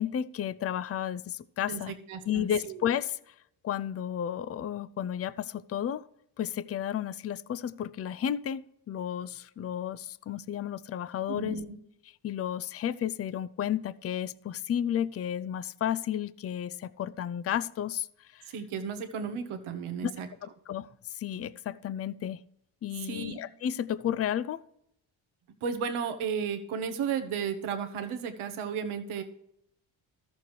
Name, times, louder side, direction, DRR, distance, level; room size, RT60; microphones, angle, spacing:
voice 1, 0.0-1.9 2.3-3.2 3.6-6.0 6.4-11.6 12.2-18.1 18.3-18.4 20.0-20.1 20.4-20.9 21.1-22.4 22.8-24.6, left 10 dB, 30° left, 0.4 m, -32 dB
voice 2, 1.7-2.9 11.3-11.8 18.5-20.3 23.0-23.4 25.6-29.2, right 6 dB, 85° right, 1.2 m, -34 dB
13.5 x 7.0 x 3.1 m
cardioid pair, 65°, 48 cm